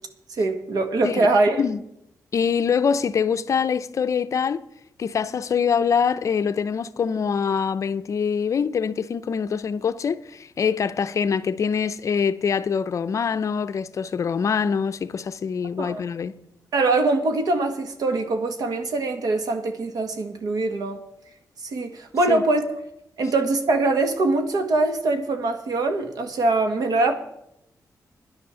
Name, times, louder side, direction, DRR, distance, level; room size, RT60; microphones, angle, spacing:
voice 1, 0.4-1.6 15.8-16.0 16.7-21.0 21.6-22.7 23.2-27.2, right 2 dB, 75° right, 1.6 m, -23 dB
voice 2, 2.3-4.6 5.0-16.3 22.3-22.4, left 6 dB, 55° left, 0.6 m, -24 dB
10.5 x 10.5 x 7.0 m
wide cardioid pair, 140°, 7 cm